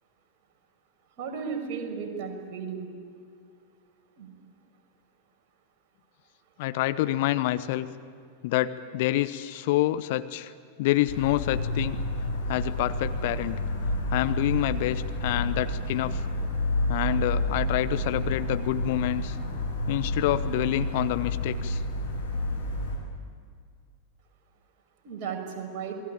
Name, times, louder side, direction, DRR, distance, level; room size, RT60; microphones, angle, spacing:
voice 1, 1.2-2.9 4.2-4.3 25.0-25.9, right 6 dB, 40° right, 2 dB, 6.0 m, -34 dB
voice 2, 6.6-7.9 8.4-10.5 10.8-12.0 12.5-13.6 14.1-16.2 16.9-19.4 19.9-21.8, left 15 dB, 50° left, 12 dB, 0.9 m, -27 dB
sound 1, 11.1-23.0, left 1 dB, 70° left, 7.0 m, -30 dB
27.5 x 21.5 x 8.9 m, 2.2 s
figure-of-eight pair, 90°, 0 cm